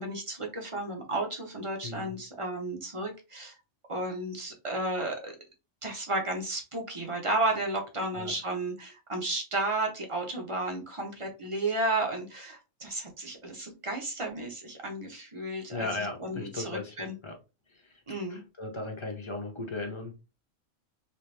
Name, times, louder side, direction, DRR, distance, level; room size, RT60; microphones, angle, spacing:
voice 1, 0.0-3.5 3.9-5.3 5.8-17.1 18.1-18.4, right 2 dB, 30° right, 0.8 m, -33 dB
voice 2, 1.8-2.2 8.2-8.3 15.7-17.4 18.3-20.1, left 3 dB, 30° left, 0.5 m, -36 dB
3.3 x 2.9 x 3.2 m
omnidirectional pair, 1.5 m